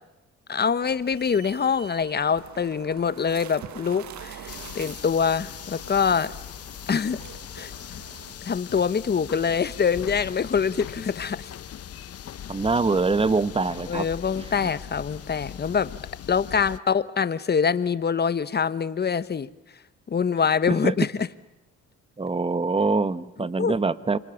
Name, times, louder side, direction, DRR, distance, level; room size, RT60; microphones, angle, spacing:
voice 1, 0.5-6.3 6.9-7.2 7.5-7.7 8.4-11.5 13.9-15.9 16.3-19.5 20.1-21.1 23.6-23.7, left 6 dB, 35° left, 15 dB, 1.1 m, -24 dB
sound 1, 0.8-8.4, right 9 dB, 70° right, 1.8 m, -45 dB
sound 2, 4.5-16.8, left 9 dB, 55° left, 0.9 m, -40 dB
voice 2, 12.5-14.1 20.7-20.9 22.2-24.2, right 3 dB, 20° right, 14 dB, 1.2 m, -24 dB
29.0 x 25.0 x 7.1 m, 0.95 s
cardioid pair, 90°, 30 cm